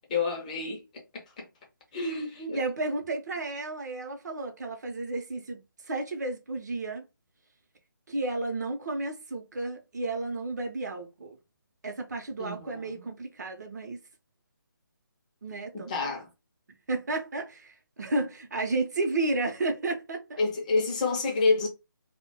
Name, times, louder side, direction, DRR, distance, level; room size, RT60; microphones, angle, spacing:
voice 1, 0.1-1.4 1.9-2.6 12.4-12.9 15.7-16.3 20.4-21.7, left 3 dB, 20° left, 0.5 m, -29 dB
voice 2, 2.5-7.1 8.1-11.4 11.8-14.0 15.4-16.1 16.9-20.4, right 2 dB, 55° right, 0.6 m, -32 dB
2.2 x 2.1 x 2.8 m
figure-of-eight pair, 150°, 11 cm